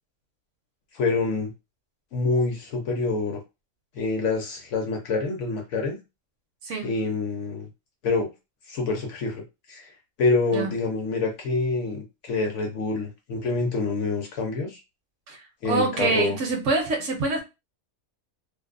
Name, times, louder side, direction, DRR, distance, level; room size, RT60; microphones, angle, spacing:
voice 1, 0.9-1.5 2.1-3.4 4.0-6.0 6.8-7.7 8.0-8.3 8.7-9.4 9.7-9.9 10.2-14.8 15.6-16.4, left 3 dB, 65° left, 0.9 m, -26 dB
voice 2, 6.6-6.9 10.5-10.7 15.3-17.4, right 3 dB, 70° right, 0.9 m, -26 dB
2.5 x 2.0 x 2.4 m
omnidirectional pair, 1.5 m